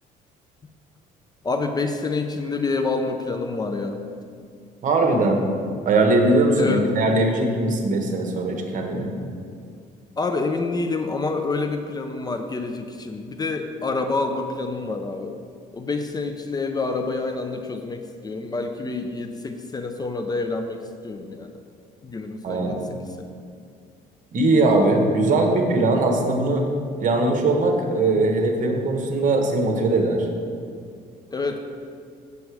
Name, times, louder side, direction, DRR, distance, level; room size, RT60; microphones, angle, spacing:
voice 1, 1.4-4.0 6.6-7.1 10.2-15.4 15.7-21.5 22.0-23.3 31.3-31.6, left 3 dB, 25° left, 6 dB, 0.5 m, -27 dB
voice 2, 4.8-5.4 5.8-9.1 22.4-22.8 24.3-26.7 27.0-30.3, right 2 dB, 50° right, 3 dB, 1.3 m, -20 dB
7.5 x 6.9 x 4.8 m, 2.3 s
cardioid pair, 110°, 17 cm